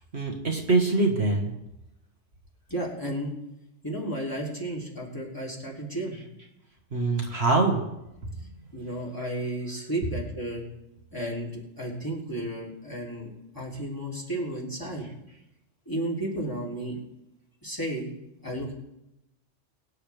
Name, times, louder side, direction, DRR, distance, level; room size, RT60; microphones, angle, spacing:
voice 1, 0.1-1.5 6.9-7.8, right 3 dB, 55° right, 0 dB, 2.0 m, -24 dB
voice 2, 2.7-3.3 3.8-6.2 8.7-10.6 11.1-15.1 15.8-17.0 17.6-18.1 18.4-18.7, right 1 dB, 15° left, -3 dB, 3.3 m, -33 dB
23.0 x 9.8 x 3.5 m, 0.88 s
omnidirectional pair, 1.3 m